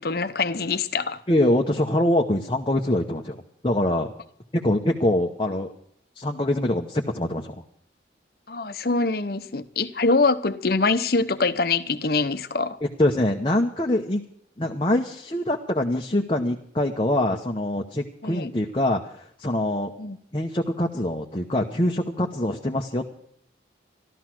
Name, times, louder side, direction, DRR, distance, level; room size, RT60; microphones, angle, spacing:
voice 1, 0.0-1.2 8.5-12.8 18.2-18.5 20.0-20.2, left 3 dB, 55° left, 0.9 m, -24 dB
voice 2, 1.3-4.1 4.5-5.7 6.1-7.6 12.8-14.2 14.6-19.9 20.3-23.0, left 1 dB, 25° left, 0.9 m, -24 dB
13.5 x 13.0 x 6.1 m
head